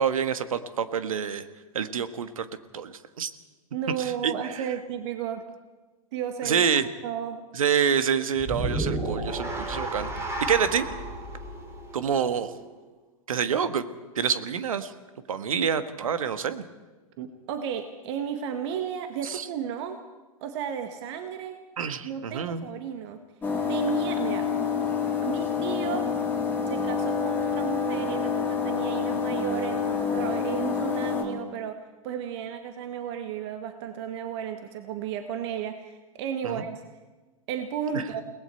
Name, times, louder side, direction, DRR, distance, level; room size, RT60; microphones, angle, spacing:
voice 1, 0.0-1.4 1.7-2.5 2.7-3.3 4.0-4.3 6.4-6.8 7.5-10.1 10.4-10.9 11.9-12.5 13.3-13.9 14.1-14.9 15.3-16.6 19.2-19.5 21.8-22.7 36.4-36.6 37.9-38.0, right 7 dB, 70° right, 11 dB, 1.6 m, -27 dB
voice 2, 3.7-5.4 6.1-6.7 7.0-7.4 17.2-20.0 20.4-21.6 22.0-23.2 23.7-24.5 25.3-26.1 26.7-36.8 37.5-38.2, right 8 dB, 50° right, 7 dB, 1.7 m, -33 dB
sound 1, 8.4-12.7, right 2 dB, 15° right, 5.7 m, -32 dB
sound 2, 23.4-31.2, left 6 dB, 10° left, 3.7 m, -27 dB
29.5 x 19.5 x 4.5 m, 1.2 s
figure-of-eight pair, 100°, 18 cm